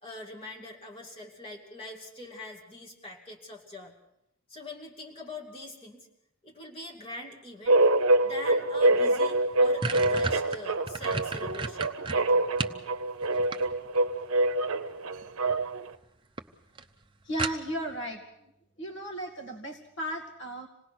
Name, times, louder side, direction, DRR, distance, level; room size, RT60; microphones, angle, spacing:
voice 1, 0.0-4.0 4.5-6.1 6.4-7.8 8.2-12.4, left 2 dB, 25° left, -1 dB, 2.7 m, -43 dB
sound 1, 7.7-15.9, right 2 dB, 75° right, 0.8 m, -25 dB
sound 2, 8.9-9.0 9.3-12.8 13.2-14.1 15.2-15.6 15.9-16.0 16.4-16.5 16.8-16.9 17.4-17.9, right 4 dB, 25° right, 0.7 m, -33 dB
voice 2, 17.2-18.5 18.8-20.7, right 1 dB, 55° left, 2 dB, 2.1 m, -35 dB
26.5 x 18.5 x 6.1 m, 0.84 s
head